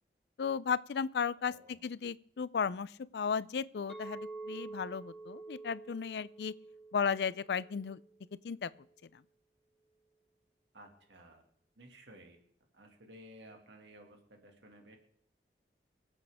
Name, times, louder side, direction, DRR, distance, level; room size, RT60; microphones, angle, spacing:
voice 1, 0.4-6.5 6.9-8.0 8.4-8.7, left 6 dB, 70° left, 18 dB, 0.4 m, -35 dB
Chink clink, 3.9-8.2, right 3 dB, ahead, 0.9 m, -48 dB
voice 2, 10.7-11.4 11.8-12.4 12.7-15.0, right 1 dB, 85° right, 3 dB, 2.1 m, -55 dB
24.5 x 8.3 x 3.5 m, 0.62 s
head